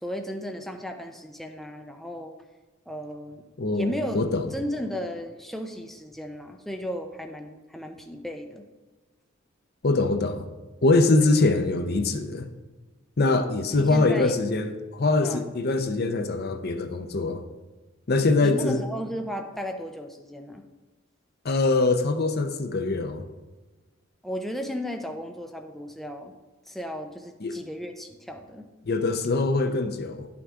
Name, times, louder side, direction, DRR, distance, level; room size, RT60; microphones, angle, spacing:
voice 1, 0.0-2.3 2.9-3.4 3.7-4.2 4.5-8.6 13.7-14.3 15.2-15.4 18.4-20.6 24.2-26.3 26.7-28.7, equal, ahead, 4 dB, 0.6 m, -35 dB
voice 2, 3.6-4.5 9.8-10.5 10.8-12.5 13.2-17.4 18.1-18.8 21.4-23.2 27.4-27.5 28.9-30.3, left 3 dB, 55° left, 8 dB, 0.7 m, -23 dB
11.0 x 6.0 x 3.6 m, 1.2 s
head